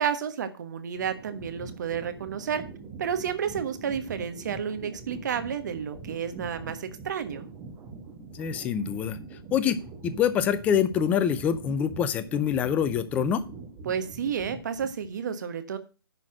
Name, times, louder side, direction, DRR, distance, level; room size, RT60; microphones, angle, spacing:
voice 1, 0.0-2.6 3.0-7.5 13.8-15.8, right 7 dB, 50° right, 10 dB, 1.4 m, -31 dB
sound 1, 1.0-15.2, right 4 dB, 15° right, 1.2 m, -43 dB
voice 2, 8.3-9.2 9.5-9.8 10.0-13.4, left 8 dB, 10° left, 13 dB, 0.5 m, -25 dB
10.5 x 4.1 x 7.4 m, 0.34 s
hypercardioid pair, 150°, 13 cm